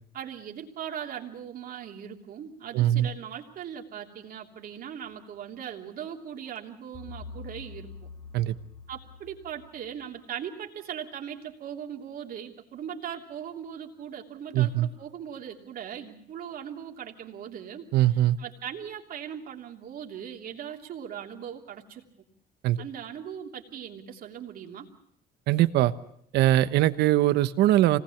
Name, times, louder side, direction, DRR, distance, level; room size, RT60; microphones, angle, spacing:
voice 1, 0.1-8.1 8.9-22.0 22.8-24.9, right 9 dB, 60° right, 2 dB, 3.1 m, -39 dB
voice 2, 2.7-3.1 8.3-8.5 14.5-14.9 17.9-18.4 22.6-22.8 25.5-25.9 26.3-28.0, right 14 dB, 80° right, 13 dB, 1.1 m, -21 dB
sound 1, 6.9-10.1, left 4 dB, 35° left, 2.9 m, -45 dB
26.0 x 19.5 x 7.2 m, 0.69 s
cardioid pair, 110°, 17 cm